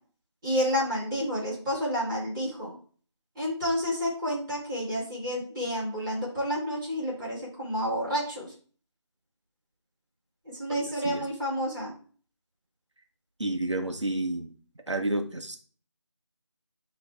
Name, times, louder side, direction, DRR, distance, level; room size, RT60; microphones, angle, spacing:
voice 1, 0.4-2.8 3.4-8.5 10.4-12.0, equal, 10° right, -12 dB, 2.2 m, -30 dB
voice 2, 10.7-11.3 13.4-14.5 14.9-15.6, right 2 dB, 75° right, 4 dB, 1.1 m, -30 dB
9.9 x 3.3 x 3.5 m, 0.42 s
figure-of-eight pair, 170°, 15 cm